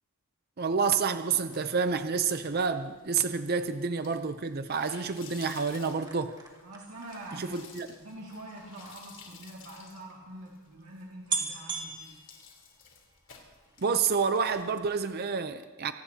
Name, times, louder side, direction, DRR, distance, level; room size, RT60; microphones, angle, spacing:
voice 1, 0.6-6.3 7.4-7.9 13.8-15.9, right 5 dB, 45° right, 9 dB, 0.6 m, -29 dB
sound 1, 1.2-15.3, left 6 dB, 55° left, 3.5 m, -55 dB
sound 2, 5.4-9.0 9.8-9.9 10.1-10.2 10.8-10.9 11.3-13.2 13.6-14.0 14.3-14.4, right 4 dB, 20° right, 2.2 m, -38 dB
voice 2, 6.6-7.6 8.0-12.2, right 1 dB, 80° right, -3 dB, 2.2 m, -45 dB
26.0 x 18.5 x 2.8 m, 1.3 s
head